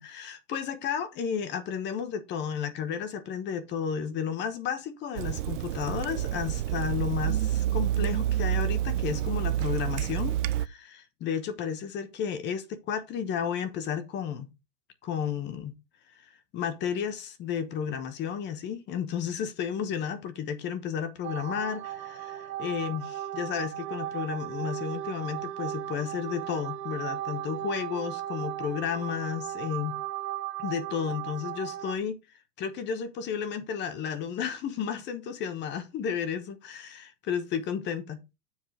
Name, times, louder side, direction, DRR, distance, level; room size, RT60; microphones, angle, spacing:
voice 1, 0.0-14.5 15.0-15.7 16.5-30.0 30.6-32.2 32.6-38.4, left 7 dB, 20° left, 1.0 m, -32 dB
Water tap faucet / Sink (filling or washing), 5.1-10.7, right 12 dB, 55° right, 0.5 m, -28 dB
sound 1, 21.2-32.0, right 12 dB, 70° right, 1.2 m, -36 dB
7.4 x 3.7 x 6.2 m
hypercardioid pair, 145°, 50 cm